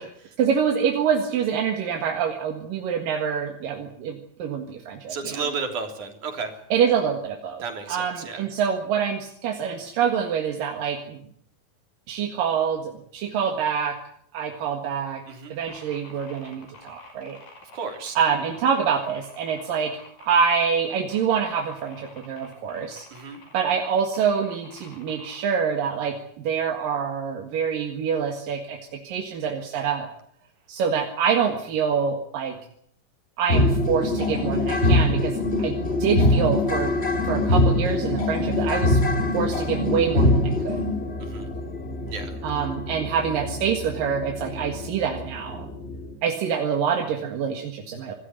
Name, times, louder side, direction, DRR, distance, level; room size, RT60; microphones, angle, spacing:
voice 1, 0.4-5.4 6.7-7.6 7.9-11.2 12.1-14.0 14.3-15.2 15.5-17.4 18.2-19.9 20.3-23.1 23.5-28.8 29.0-30.1 30.7-32.5 33.4-35.7 36.0-36.9 37.2-39.0 39.3-40.8 42.4-45.7 46.2-48.2, right 7 dB, 80° right, 3 dB, 3.4 m, -26 dB
voice 2, 5.1-6.5 7.6-8.5 15.3-15.6 17.7-18.2 23.1-23.4 41.2-41.5 42.1-42.3, right 5 dB, 60° right, 5 dB, 4.9 m, -33 dB
sound 1, 15.6-25.4, left 3 dB, 80° left, 7.3 m, -48 dB
sound 2, 33.5-46.1, left 1 dB, 20° left, 2.0 m, -24 dB
25.5 x 14.5 x 9.5 m, 0.67 s
omnidirectional pair, 4.0 m